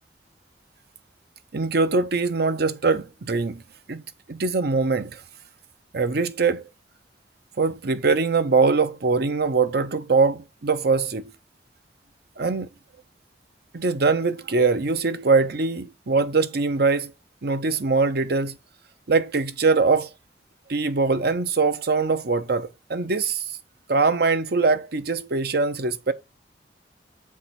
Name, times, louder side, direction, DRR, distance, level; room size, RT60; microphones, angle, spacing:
voice 1, 1.5-3.6 3.9-4.0 4.3-5.2 5.9-6.7 7.6-11.3 12.4-12.7 13.7-17.1 17.4-18.6 19.1-20.1 20.7-23.4 23.9-26.1, right 4 dB, 65° right, 0.8 m, -22 dB
7.2 x 4.7 x 4.3 m
head